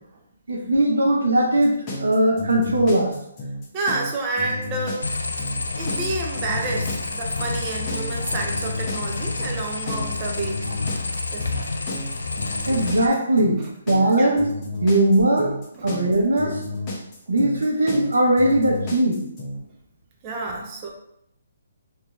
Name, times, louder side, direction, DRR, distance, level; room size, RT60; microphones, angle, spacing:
voice 1, 0.5-3.2 12.7-14.5 14.8-15.5 15.8-16.6 17.3-19.2, right 1 dB, 90° right, 0 dB, 1.0 m, -20 dB
sound 1, 1.6-19.6, left 2 dB, 25° left, 0.9 m, -32 dB
voice 2, 3.7-5.1 5.8-10.6 11.3-11.6 14.2-14.4 15.8-15.9 20.2-20.9, right 3 dB, 25° right, 0 dB, 0.5 m, -29 dB
sound 2, 5.0-13.1, left 3 dB, 90° left, 0.5 m, -29 dB
3.2 x 2.8 x 3.4 m, 0.77 s
hypercardioid pair, 155°, 0 cm